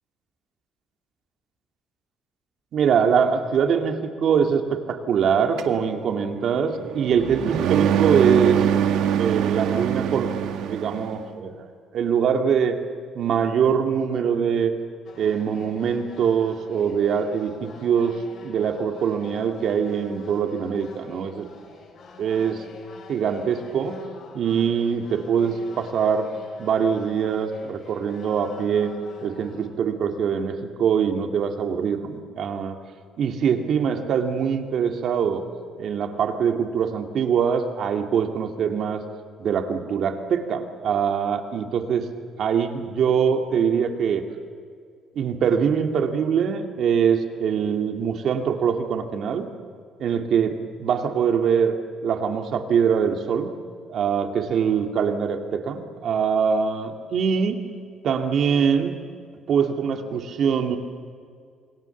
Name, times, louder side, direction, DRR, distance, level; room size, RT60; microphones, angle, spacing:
voice 1, 2.7-8.7 9.2-11.7 11.9-12.8 13.1-14.7 15.2-18.2 18.4-21.5 22.2-22.6 23.1-24.0 24.3-26.3 26.6-28.9 29.2-32.8 33.2-35.4 35.8-39.0 39.4-42.1 42.4-44.2 45.2-49.5 50.0-51.7 52.0-53.5 53.9-57.6 58.0-59.0 59.5-60.8, right 7 dB, 50° right, 5 dB, 2.3 m, -23 dB
sound 1, 5.6-11.2, right 9 dB, 80° right, 1.9 m, -24 dB
sound 2, 15.1-29.7, left 4 dB, 45° left, 5.4 m, -46 dB
28.0 x 23.0 x 7.2 m, 2.2 s
cardioid pair, 175°, 0 cm